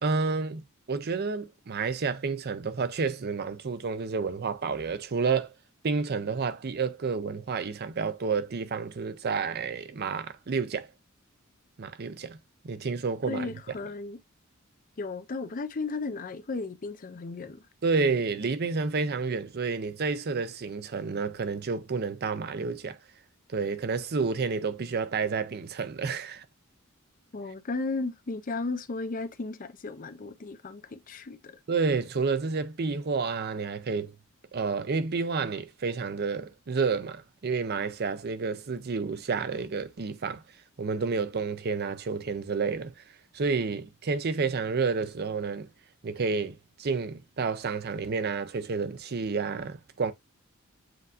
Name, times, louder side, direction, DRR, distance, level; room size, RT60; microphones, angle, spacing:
voice 1, 0.0-5.5 5.8-10.9 11.8-12.4 12.6-13.5 17.8-23.0 23.5-26.4 31.7-34.1 34.5-40.4 40.8-42.9 43.3-45.7 46.0-50.1, right 4 dB, 45° right, 0.5 m, -30 dB
voice 2, 13.3-14.2 15.0-17.7 27.3-31.6, left 3 dB, 40° left, 0.5 m, -35 dB
7.7 x 2.6 x 2.4 m
head